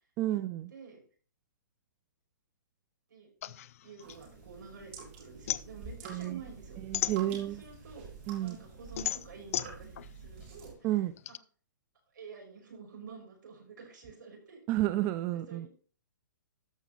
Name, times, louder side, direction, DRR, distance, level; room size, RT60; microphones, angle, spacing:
voice 1, 0.2-0.7 6.1-6.4 6.8-7.6 8.3-8.6 10.8-11.1 14.7-15.7, right 14 dB, 20° right, 12 dB, 0.4 m, -31 dB
voice 2, 0.7-1.0 3.1-3.5 3.8-6.8 7.2-8.1 8.4-10.9 11.3-11.4 12.1-14.6 15.3-15.7, right 5 dB, 75° right, 1 dB, 5.6 m, -49 dB
sound 1, 3.4-4.9 5.2-7.8 8.2-11.4, left 12 dB, 45° left, 0.4 m, -36 dB
sound 2, 4.0-10.7, right 5 dB, 40° right, 4.0 m, -48 dB
13.5 x 5.2 x 4.1 m, 0.40 s
hypercardioid pair, 160°, 10 cm